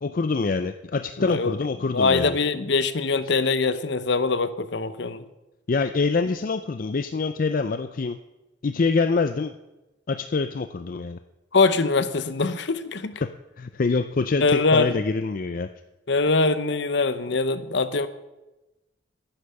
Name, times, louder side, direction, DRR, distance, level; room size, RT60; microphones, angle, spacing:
voice 1, 0.0-2.4 5.7-8.2 8.6-9.5 10.1-11.2 13.2-13.3 13.6-15.7, left 4 dB, 45° left, 10 dB, 0.4 m, -25 dB
voice 2, 1.2-1.5 1.9-5.2 11.5-13.2 14.4-15.0 16.1-18.1, left 3 dB, 65° left, 13 dB, 0.8 m, -23 dB
10.0 x 10.0 x 6.9 m, 1.0 s
head